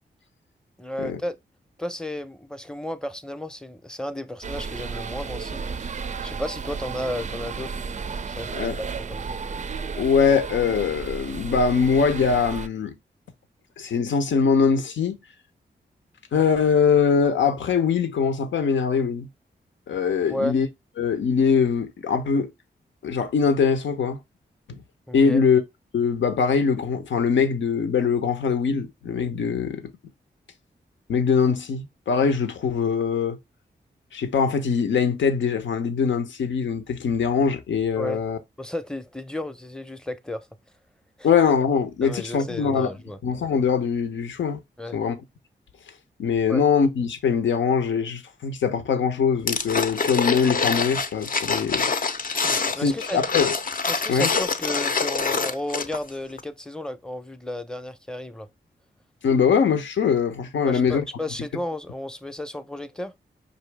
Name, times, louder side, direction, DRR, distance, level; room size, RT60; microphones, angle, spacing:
voice 1, 0.8-1.4 1.8-5.9 6.2-7.8 8.2-9.4 20.3-20.6 25.1-25.4 38.0-38.2 38.6-40.5 41.2-41.3 42.0-43.2 44.8-45.0 46.5-46.6 52.4-53.3 53.9-58.5 60.6-63.1, left 1 dB, 5° left, 0.6 m, -33 dB
sound 1, 4.4-12.7, right 5 dB, 40° right, 0.4 m, -33 dB
voice 2, 10.0-13.0 13.8-15.2 16.3-19.3 19.9-20.7 21.0-22.5 23.0-24.2 24.7-24.8 25.1-25.6 25.9-29.9 31.1-33.4 34.1-38.4 41.2-42.9 43.2-44.6 44.9-45.2 46.2-51.9 52.8-53.5 54.1-54.3 59.2-61.0, left 6 dB, 85° left, 0.7 m, -22 dB
sound 2, 49.5-56.1 56.4-56.5, left 5 dB, 50° left, 0.6 m, -25 dB
5.2 x 2.7 x 3.3 m
cardioid pair, 60°, 19 cm